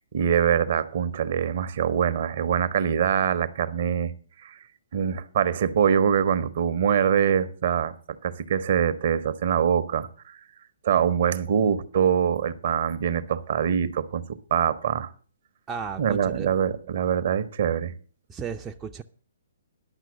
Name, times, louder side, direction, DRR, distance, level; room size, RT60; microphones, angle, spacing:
voice 1, 0.1-4.1 4.4-4.6 4.9-7.9 8.2-10.4 10.8-14.2 14.5-15.1 16.0-17.9, right 8 dB, 50° right, 0.8 m, -24 dB
voice 2, 15.7-16.5 18.3-19.0, right 6 dB, 15° right, 0.5 m, -34 dB
10.5 x 6.0 x 7.0 m
figure-of-eight pair, 125°, 0 cm